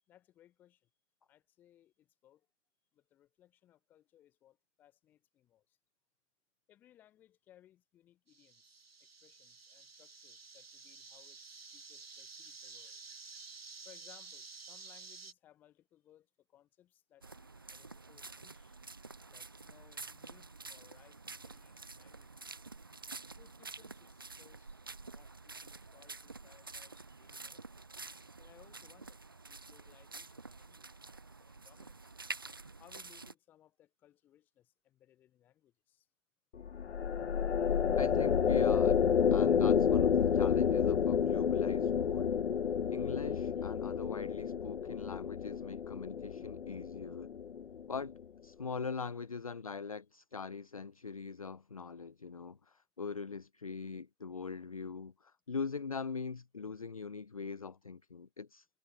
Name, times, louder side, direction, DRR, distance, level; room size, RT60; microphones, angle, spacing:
voice 1, 0.1-0.9 1.3-2.5 2.9-5.8 6.7-13.0 13.8-18.8 19.3-22.5 23.4-24.8 25.0-27.6 28.4-29.2 29.4-32.2 32.8-36.1 43.0-43.7, left 12 dB, 5° left, 2.9 m, -65 dB
sound 1, 8.3-15.3, right 4 dB, 55° right, 7.6 m, -52 dB
sound 2, 17.2-33.3, right 3 dB, 20° right, 1.0 m, -49 dB
sound 3, 36.6-48.0, left 7 dB, 65° left, 0.6 m, -30 dB
voice 2, 38.0-39.0 39.3-42.4 42.9-47.3 47.9-58.6, left 5 dB, 30° left, 1.2 m, -42 dB
hypercardioid pair, 175°, 35 cm